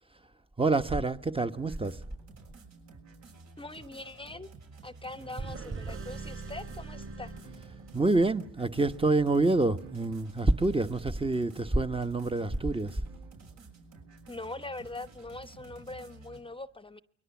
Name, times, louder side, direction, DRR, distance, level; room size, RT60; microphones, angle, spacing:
voice 1, 0.6-2.0 7.9-13.0, right 2 dB, 20° right, 1.1 m, -27 dB
sound 1, 1.5-16.4, right 3 dB, 65° right, 6.5 m, -52 dB
voice 2, 3.6-4.5 4.8-7.3 14.3-17.0, left 2 dB, 15° left, 0.9 m, -42 dB
sound 2, 5.2-13.6, right 7 dB, 90° right, 2.2 m, -58 dB
sound 3, 5.4-8.2, right 3 dB, 45° right, 4.7 m, -41 dB
29.5 x 22.0 x 7.2 m
cardioid pair, 90°, 30 cm